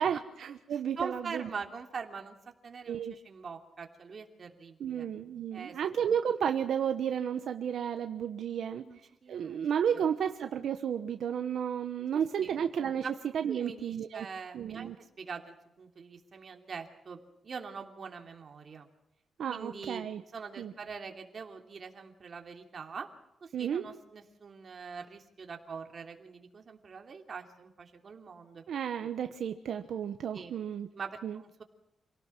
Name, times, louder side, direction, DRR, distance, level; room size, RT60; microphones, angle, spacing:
voice 1, 0.0-1.5 2.9-3.1 4.8-8.8 9.3-13.1 13.3-14.3 14.5-15.0 19.4-20.2 20.6-20.7 23.5-23.8 28.7-30.9 31.2-31.4, right 8 dB, 75° right, 7 dB, 1.1 m, -32 dB
voice 2, 0.7-2.3 2.6-5.1 5.5-5.8 8.6-9.6 9.9-10.0 12.1-12.6 13.0-13.1 13.5-18.9 19.5-20.1 20.3-23.1 23.4-28.6 29.0-29.1 30.3-30.5 30.9-31.6, right 5 dB, 45° right, 4 dB, 3.0 m, -43 dB
27.5 x 18.0 x 6.2 m, 0.86 s
wide cardioid pair, 130°, 0 cm